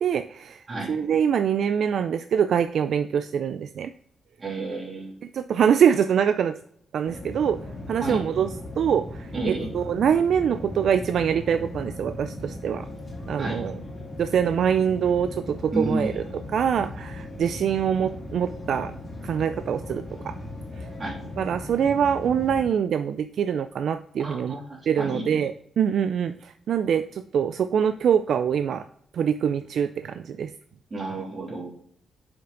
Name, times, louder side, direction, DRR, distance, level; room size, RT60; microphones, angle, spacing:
voice 1, 0.0-3.9 5.2-6.6 6.9-7.6 7.9-8.5 8.8-12.9 13.3-13.8 14.2-16.2 16.5-18.9 19.2-20.4 20.7-20.9 21.4-28.9 29.1-30.5, right 8 dB, 70° right, 10 dB, 0.3 m, -24 dB
voice 2, 4.4-5.2 8.0-8.2 9.3-9.7 13.4-13.6 15.7-16.2 21.0-21.2 24.2-25.2 30.9-31.7, right 2 dB, 40° right, -3 dB, 3.0 m, -30 dB
sound 1, 7.0-22.6, left 1 dB, 15° left, 2.8 m, -38 dB
6.9 x 5.1 x 3.8 m, 0.66 s
cardioid pair, 100°, 0 cm